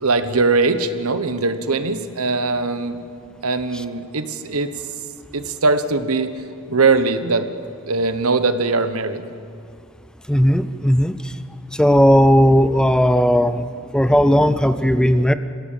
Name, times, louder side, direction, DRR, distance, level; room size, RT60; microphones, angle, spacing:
voice 1, 0.0-3.0 3.4-4.7 5.3-6.3 6.7-7.5 7.9-9.2, right 3 dB, 80° right, 11 dB, 1.2 m, -20 dB
voice 2, 10.3-11.3 11.7-13.7 13.9-15.3, equal, 5° left, 12 dB, 0.5 m, -16 dB
25.5 x 16.5 x 7.3 m, 2.5 s
head